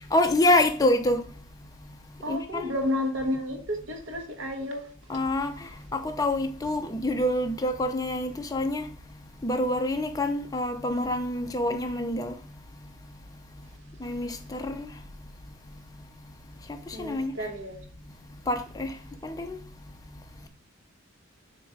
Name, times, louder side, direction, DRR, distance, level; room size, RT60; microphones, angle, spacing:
voice 1, 0.1-1.2 2.3-2.7 5.1-5.5 5.9-8.8 9.4-12.3 14.0-14.9 17.0-17.3 18.5-18.9 19.2-19.6, left 1 dB, 15° left, 0.7 m, -26 dB
voice 2, 2.2-4.8 16.9-17.8, left 1 dB, 60° right, 1.5 m, -31 dB
7.5 x 3.0 x 4.9 m
head